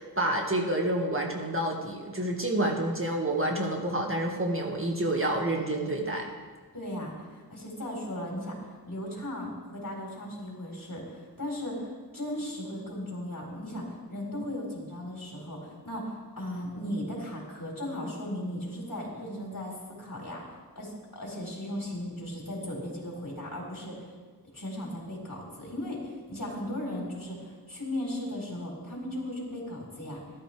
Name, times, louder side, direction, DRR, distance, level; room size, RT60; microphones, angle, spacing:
voice 1, 0.0-6.3, right 1 dB, 30° right, 0 dB, 2.0 m, -28 dB
voice 2, 6.7-24.1 24.5-30.2, left 1 dB, 50° left, -3 dB, 4.5 m, -37 dB
14.5 x 12.0 x 3.5 m, 1.5 s
wide cardioid pair, 40°, 40 cm